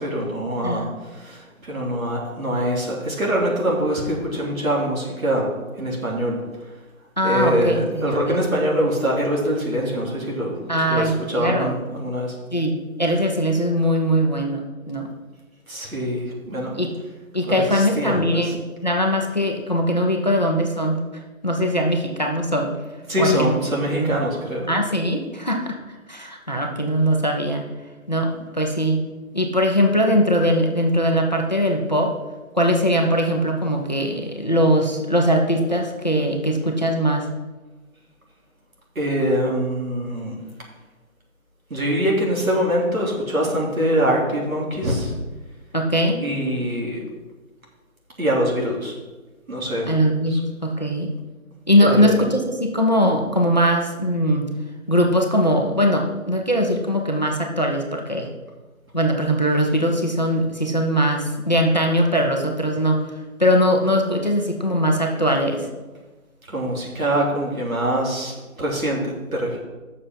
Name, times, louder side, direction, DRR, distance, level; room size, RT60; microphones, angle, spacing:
voice 1, 0.0-5.5 5.8-6.4 7.2-12.4 15.7-16.8 17.5-18.5 23.1-24.7 38.9-40.4 41.7-45.1 46.2-47.0 48.2-48.9 49.5-49.9 50.3-50.4 51.8-52.2 66.5-69.6, equal, 75° right, -3 dB, 3.3 m, -24 dB
voice 2, 7.2-8.4 10.7-11.7 12.5-15.1 16.8-16.9 17.3-21.0 21.4-22.8 23.2-23.5 23.9-24.1 24.7-25.8 26.1-27.6 28.1-29.0 29.3-32.2 32.5-37.3 45.7-46.2 49.8-51.1 51.7-54.5 54.9-58.3 58.9-65.7, equal, 30° left, 2 dB, 0.7 m, -21 dB
7.6 x 6.6 x 5.8 m, 1.2 s
figure-of-eight pair, 175°, 42 cm